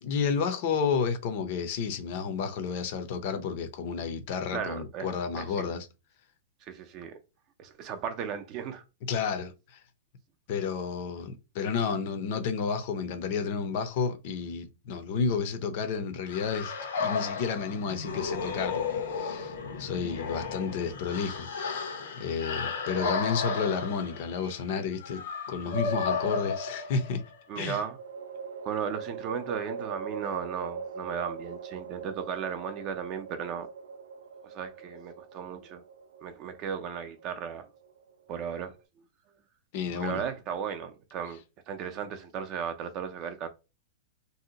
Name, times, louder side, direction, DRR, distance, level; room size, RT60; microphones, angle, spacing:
voice 1, 0.0-5.9 9.1-9.8 10.5-16.7 17.0-21.8 22.2-25.2 25.5-27.2 27.6-27.8 39.7-40.3, left 6 dB, 45° left, 0.6 m, -31 dB
voice 2, 4.5-5.7 6.7-7.2 7.6-8.8 27.5-28.0 28.6-33.7 34.4-35.8 36.2-37.7 38.3-38.7 39.9-41.4 41.7-43.5, right 7 dB, 30° right, 0.5 m, -35 dB
sound 1, 16.3-27.3, left 4 dB, 85° left, 0.9 m, -34 dB
sound 2, 24.6-25.2 27.5-38.8, right 5 dB, 85° right, 0.4 m, -42 dB
2.7 x 2.1 x 3.8 m
supercardioid pair, 165°, 0 cm